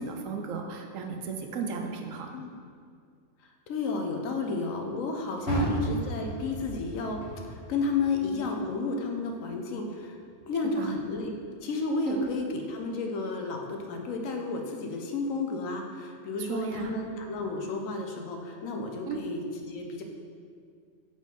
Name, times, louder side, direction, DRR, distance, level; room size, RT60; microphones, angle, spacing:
voice 1, 0.0-2.3 5.5-5.7 10.8-11.0 12.1-12.2 16.4-17.0 19.0-19.2, right 6 dB, 75° right, 3 dB, 1.0 m, -34 dB
voice 2, 2.3-2.6 3.7-10.2 10.5-11.3 11.6-20.0, left 3 dB, 80° left, 3 dB, 1.1 m, -32 dB
Car, 5.4-8.7 9.1-10.5 10.9-11.0 11.6-11.7, equal, 55° left, 1.5 m, -35 dB
5.2 x 3.8 x 5.1 m, 2.2 s
omnidirectional pair, 1.4 m